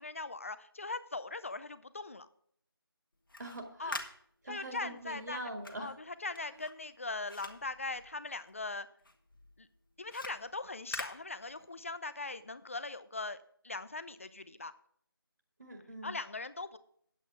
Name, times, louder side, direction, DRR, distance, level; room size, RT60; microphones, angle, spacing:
voice 1, 0.0-2.3 3.8-4.0 4.5-5.4 5.8-8.9 9.6-9.7 10.0-13.4 13.6-14.7 16.0-16.8, left 3 dB, 35° left, 14 dB, 0.5 m, -40 dB
sound 1, 3.1-8.7 9.0-11.9, left 2 dB, 60° left, 1.5 m, -47 dB
voice 2, 3.4-4.0 4.4-6.0 15.6-16.2, right 1 dB, 50° right, 3 dB, 1.7 m, -43 dB
9.2 x 8.3 x 4.7 m, 0.66 s
figure-of-eight pair, 165°, 13 cm